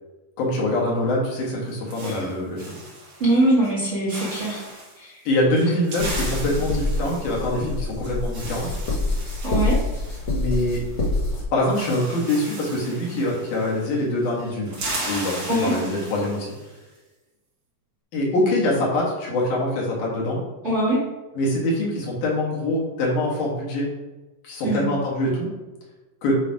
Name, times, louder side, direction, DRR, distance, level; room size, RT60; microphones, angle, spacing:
voice 1, 0.4-2.8 5.2-8.7 10.3-10.8 11.5-14.7 15.0-16.5 18.1-20.4 21.3-23.9 24.4-25.5 26.2-26.4, left 1 dB, 80° left, -4 dB, 3.2 m, -24 dB
sound 1, 1.4-3.4 3.6-5.0 5.5-11.0 11.3-11.4 11.6-14.0 14.3-16.7, right 1 dB, 55° right, 2.9 m, -36 dB
voice 2, 2.0-2.4 3.2-4.6 5.0-5.2 9.4-9.8 15.5-15.7 20.6-21.0 24.6-24.9, right 1 dB, 25° right, -8 dB, 2.1 m, -22 dB
sound 2, 6.0-11.4, left 2 dB, 45° left, 1.8 m, -26 dB
8.8 x 3.3 x 4.7 m, 1.1 s
omnidirectional pair, 3.6 m